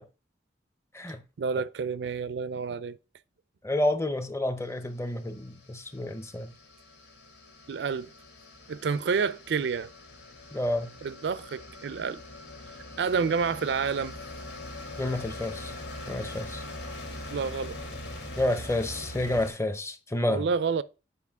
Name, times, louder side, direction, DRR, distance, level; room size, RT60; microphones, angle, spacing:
voice 1, 1.4-3.0 7.7-8.1 8.7-9.9 11.0-12.2 13.0-14.1 17.3-17.8 20.3-20.8, right 5 dB, 75° right, 0.4 m, -29 dB
voice 2, 3.6-6.5 10.5-10.9 15.0-15.7 16.1-16.6 18.4-20.5, left 1 dB, 15° left, 0.6 m, -29 dB
sound 1, 4.8-19.5, left 1 dB, 85° left, 2.3 m, -42 dB
8.3 x 5.0 x 3.5 m
head